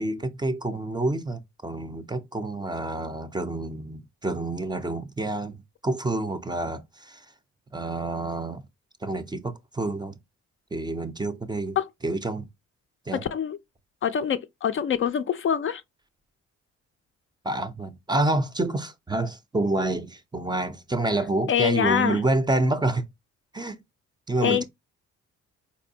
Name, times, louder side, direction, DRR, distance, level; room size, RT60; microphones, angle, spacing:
voice 1, 0.0-7.3 7.7-8.6 9.0-10.2 10.7-11.8 12.0-12.5 13.1-13.2 17.4-23.1 23.5-23.8 24.3-24.6, right 2 dB, 15° right, 0.5 m, -28 dB
voice 2, 13.1-13.6 14.0-15.8 21.5-22.2 24.4-24.6, left 8 dB, 45° left, 0.4 m, -25 dB
4.3 x 2.6 x 2.6 m
cardioid pair, 90°, 30 cm